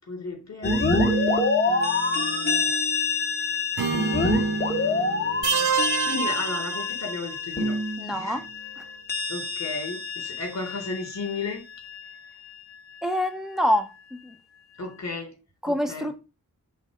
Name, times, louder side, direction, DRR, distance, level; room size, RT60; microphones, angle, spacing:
voice 1, 0.0-2.7 4.8-7.8 8.1-8.4 9.3-11.6 14.8-15.3 15.7-16.1, left 3 dB, 50° left, 3.9 m, -35 dB
sound 1, 0.6-12.2, left 2 dB, 25° left, 2.2 m, -26 dB
Acoustic guitar / Strum, 3.8-7.7, right 4 dB, 70° right, 1.7 m, -35 dB
sound 2, 5.4-7.4, right 6 dB, 55° right, 0.7 m, -27 dB
voice 2, 8.0-8.4 8.8-8.9 13.0-14.3 15.6-16.2, equal, ahead, 1.6 m, -26 dB
7.5 x 4.2 x 6.6 m
cardioid pair, 70°, 36 cm